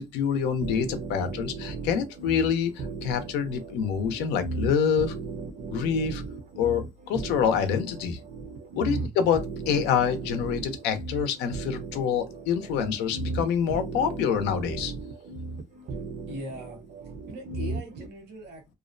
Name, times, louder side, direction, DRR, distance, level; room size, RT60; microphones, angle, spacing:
voice 1, 0.0-5.2 5.7-6.2 6.6-8.2 8.8-14.9, left 7 dB, 90° left, 0.5 m, -26 dB
sound 1, 0.6-18.1, right 4 dB, 45° right, 0.5 m, -36 dB
voice 2, 16.3-16.8 17.3-18.7, equal, 80° right, 1.0 m, -40 dB
2.4 x 2.1 x 2.5 m
cardioid pair, 110°, 17 cm